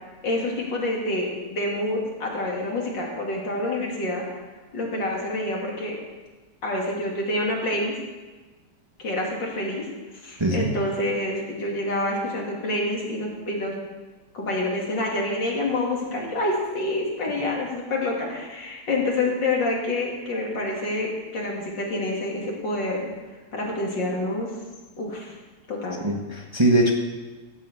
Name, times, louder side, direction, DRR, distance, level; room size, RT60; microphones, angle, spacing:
voice 1, 0.2-4.2 4.7-6.0 6.6-8.0 9.0-9.9 10.2-13.8 14.3-23.0 23.5-24.5 25.0-25.3 25.7-26.0, left 2 dB, 80° left, -2 dB, 3.5 m, -27 dB
voice 2, 10.4-10.7 26.0-26.9, right 1 dB, 15° right, 0 dB, 1.2 m, -21 dB
14.5 x 7.0 x 8.3 m, 1.3 s
omnidirectional pair, 1.9 m